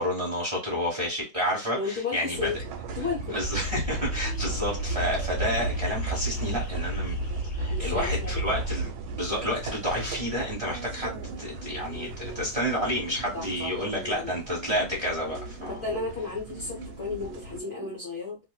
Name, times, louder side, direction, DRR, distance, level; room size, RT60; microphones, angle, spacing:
voice 1, 0.0-2.4 3.2-7.1 7.6-16.0, equal, 20° right, 1.4 m, -30 dB
voice 2, 1.7-2.6 2.9-3.4 7.7-8.4 13.3-13.7 14.1-14.3 15.7-18.4, left 4 dB, 45° left, 1.0 m, -33 dB
sound 1, 2.3-17.6, right 4 dB, 85° right, 1.4 m, -39 dB
sound 2, 3.4-8.9, equal, 70° left, 1.4 m, -31 dB
sound 3, 10.7-18.0, right 2 dB, 35° right, 0.9 m, -44 dB
3.1 x 2.6 x 2.3 m
omnidirectional pair, 2.2 m